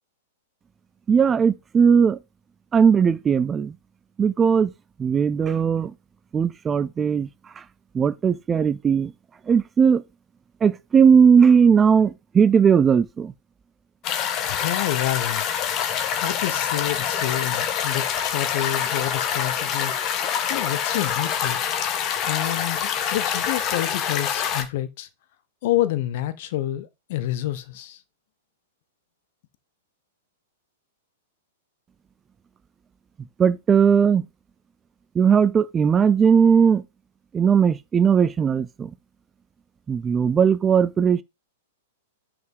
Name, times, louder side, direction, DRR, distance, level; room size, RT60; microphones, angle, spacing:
voice 1, 1.1-2.2 2.7-3.7 4.2-4.7 5.0-5.9 6.3-7.3 7.9-9.1 9.5-10.0 10.6-13.3 33.4-34.2 35.2-36.8 37.3-38.9 39.9-41.2, right 6 dB, 20° right, 0.4 m, -18 dB
sound 1, 14.0-24.6, left 8 dB, 30° left, 1.3 m, -26 dB
voice 2, 14.4-15.4 16.2-19.9 20.5-21.7 22.2-25.1 25.6-28.0, left 14 dB, 50° left, 1.1 m, -28 dB
9.3 x 4.9 x 3.9 m
figure-of-eight pair, 105°, 0 cm